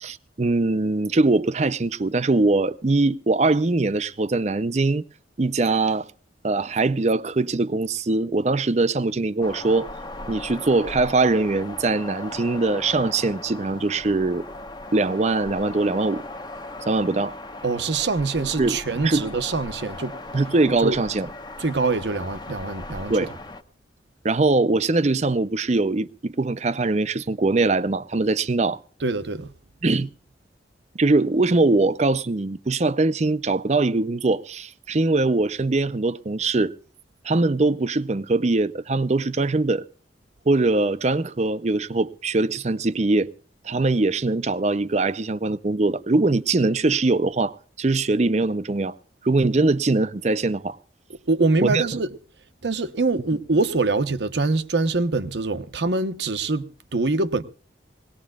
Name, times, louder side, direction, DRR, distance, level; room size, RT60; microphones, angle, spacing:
voice 1, 0.0-5.0 5.4-6.1 6.4-9.9 10.3-14.4 14.9-16.2 16.9-17.3 18.4-18.8 19.0-19.2 20.3-21.3 23.1-23.3 24.2-28.8 29.8-30.1 30.9-36.7 37.2-39.8 40.5-43.3 43.6-48.9 49.2-50.8 51.6-52.0, right 3 dB, 40° right, 0.5 m, -22 dB
sound 1, 9.4-23.6, left 2 dB, 25° left, 0.9 m, -38 dB
voice 2, 17.6-20.1 20.8-21.0 21.6-23.3 29.0-29.5 51.3-52.1 52.6-57.4, right 3 dB, 75° right, 0.9 m, -24 dB
21.0 x 18.5 x 2.3 m
head